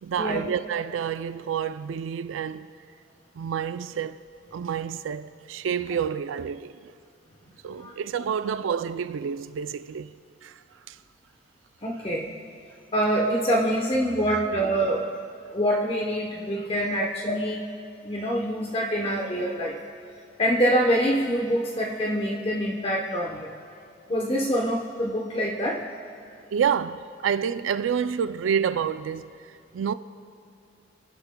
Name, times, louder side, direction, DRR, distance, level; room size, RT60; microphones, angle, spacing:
voice 1, 0.0-2.7 3.4-4.2 4.5-6.9 7.6-10.1 10.4-10.6 10.9-11.0 14.3-14.4 17.0-17.1 26.5-29.9, right 7 dB, 90° right, 0.4 m, -29 dB
voice 2, 11.8-12.3 12.9-15.1 15.5-17.7 18.0-19.8 20.4-23.5 24.1-25.8, equal, 30° left, 0.9 m, -25 dB
27.5 x 11.5 x 2.2 m
head